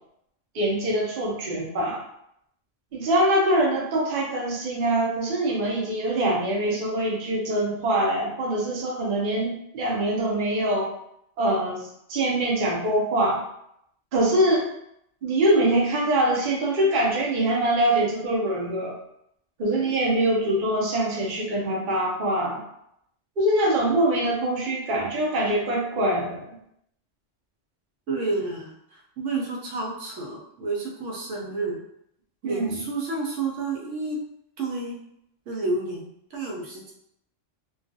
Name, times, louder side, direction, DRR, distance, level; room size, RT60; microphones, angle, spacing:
voice 1, 0.5-2.0 2.9-10.9 11.4-13.4 14.1-14.7 15.2-18.9 19.6-22.6 23.4-26.5 32.4-32.6, right 1 dB, 50° right, -2 dB, 0.7 m, -24 dB
voice 2, 28.1-31.8 32.4-34.2 34.6-35.0 35.5-36.9, right 3 dB, 75° right, -2 dB, 1.0 m, -30 dB
2.3 x 2.3 x 2.6 m, 0.76 s
omnidirectional pair, 1.3 m